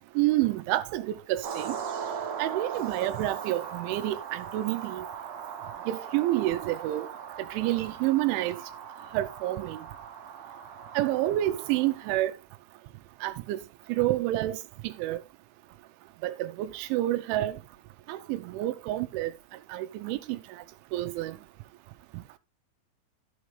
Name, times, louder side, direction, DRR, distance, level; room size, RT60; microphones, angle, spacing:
voice 1, 0.2-1.8 2.4-5.1 5.9-7.1 7.5-8.6 9.1-9.8 11.0-12.3 13.2-13.6 13.9-14.6 14.8-15.2 16.2-17.6 18.1-19.3 19.7-20.4 20.9-21.4, right 15 dB, 85° right, 3.2 m, -28 dB
sound 1, 1.4-12.2, right 7 dB, 60° right, 2.1 m, -39 dB
14.0 x 6.2 x 3.2 m
omnidirectional pair, 5.4 m